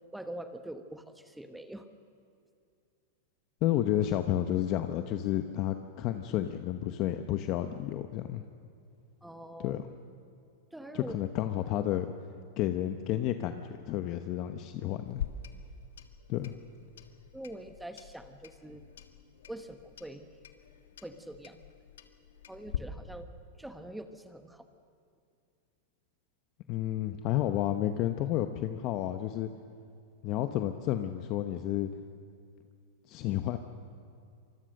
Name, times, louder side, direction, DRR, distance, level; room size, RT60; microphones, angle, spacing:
voice 1, 0.1-1.9 9.2-9.8 10.7-11.2 17.3-18.8 19.5-20.3 21.0-21.6 22.5-23.3 23.6-24.7, right 1 dB, 5° right, 8 dB, 1.1 m, -44 dB
voice 2, 3.6-8.4 9.6-9.9 10.9-12.1 12.6-15.3 16.3-16.6 26.7-29.5 30.2-31.9 33.1-33.6, left 12 dB, 40° left, 8 dB, 0.9 m, -31 dB
Clock, 15.1-22.8, left 9 dB, 85° left, 1.6 m, -44 dB
25.5 x 20.5 x 6.6 m, 2.4 s
supercardioid pair, 135°, 0 cm